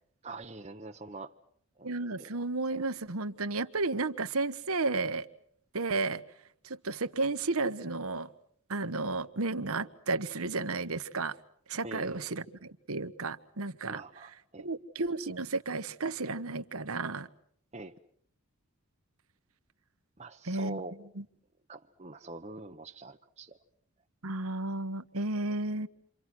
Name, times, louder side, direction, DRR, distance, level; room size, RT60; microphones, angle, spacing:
voice 1, 0.2-1.3 1.8-1.9 2.2-2.3 11.8-12.4 13.9-14.7 17.7-17.9 20.2-20.9 21.7-23.6, right 2 dB, 30° right, 1 dB, 1.0 m, -44 dB
voice 2, 1.8-5.3 5.7-6.2 6.6-8.3 8.7-11.3 11.7-14.0 14.6-17.3 20.4-20.8 21.2-21.3 24.2-25.9, right 3 dB, 80° right, 10 dB, 1.4 m, -33 dB
29.0 x 26.0 x 6.2 m, 0.64 s
head